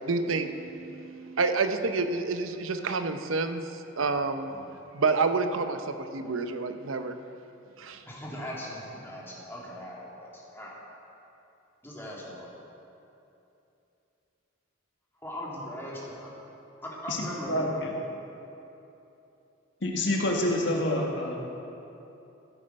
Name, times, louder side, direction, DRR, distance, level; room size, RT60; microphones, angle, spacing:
voice 1, 0.0-4.5 4.9-7.2 7.8-8.0, right 4 dB, 85° right, 8 dB, 0.7 m, -29 dB
voice 2, 8.1-10.8 11.8-12.5 15.2-16.4 16.8-17.8, equal, 10° left, -5 dB, 2.2 m, -39 dB
voice 3, 17.1-17.9 19.8-21.4, left 1 dB, 60° left, 0 dB, 1.7 m, -28 dB
14.0 x 8.8 x 5.3 m, 2.9 s
head